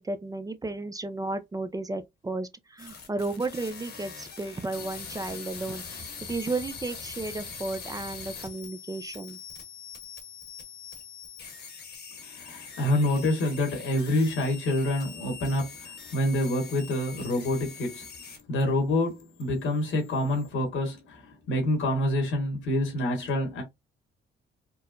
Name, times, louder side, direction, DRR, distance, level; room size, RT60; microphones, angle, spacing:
voice 1, 0.0-9.4, right 2 dB, 20° right, 0.5 m, -33 dB
sound 1, 2.8-18.6 18.9-20.5, left 6 dB, 55° left, 1.2 m, -43 dB
voice 2, 12.4-18.0 18.5-23.6, left 1 dB, 85° left, 1.9 m, -27 dB
4.5 x 2.1 x 2.5 m
cardioid pair, 90°, 20 cm